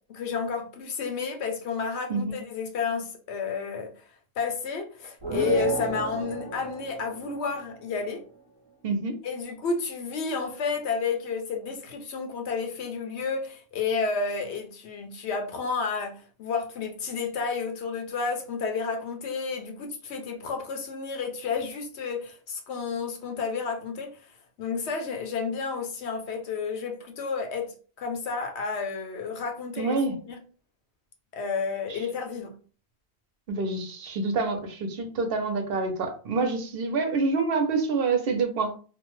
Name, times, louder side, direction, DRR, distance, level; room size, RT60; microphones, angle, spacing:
voice 1, 0.1-3.9 4.4-8.2 9.2-24.1 24.6-27.7 28.0-30.0 30.3-30.4 31.3-32.5, left 5 dB, 85° left, 1.0 m, -31 dB
sound 1, 5.2-7.9, right 4 dB, 30° right, 0.6 m, -32 dB
voice 2, 8.8-9.2 29.8-30.2 31.9-32.0 33.5-38.7, right 3 dB, 65° right, 0.8 m, -27 dB
2.7 x 2.1 x 3.0 m
omnidirectional pair, 1.1 m